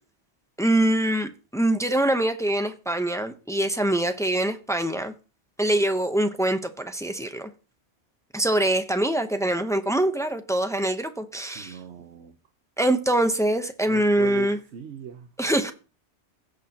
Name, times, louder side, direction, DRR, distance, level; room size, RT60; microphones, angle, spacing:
voice 1, 0.6-5.1 5.6-7.5 8.3-11.8 12.8-14.6 15.4-15.7, right 1 dB, 5° left, 0.7 m, -24 dB
voice 2, 11.6-12.3 13.9-15.3, right 8 dB, 80° right, 1.1 m, -38 dB
16.5 x 6.4 x 2.9 m
omnidirectional pair, 1.1 m